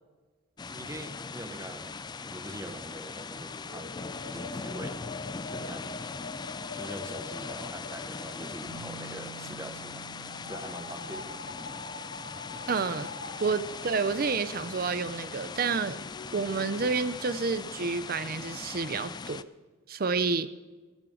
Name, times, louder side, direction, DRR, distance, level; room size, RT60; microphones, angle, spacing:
sound 1, 0.6-19.4, left 4 dB, 20° left, 0.3 m, -40 dB
voice 1, 0.6-4.0 4.3-5.0 5.5-6.0 6.7-10.0 10.5-11.3, right 1 dB, 15° right, 7 dB, 1.2 m, -43 dB
sound 2, 3.6-16.9, left 3 dB, 70° left, 1.8 m, -45 dB
sound 3, 8.7-15.3, right 8 dB, 65° right, 5.0 m, -53 dB
voice 2, 12.7-13.1 13.4-16.0 16.3-19.5 19.9-20.5, right 4 dB, 45° right, 14 dB, 0.5 m, -29 dB
18.0 x 15.0 x 3.9 m, 1.3 s
head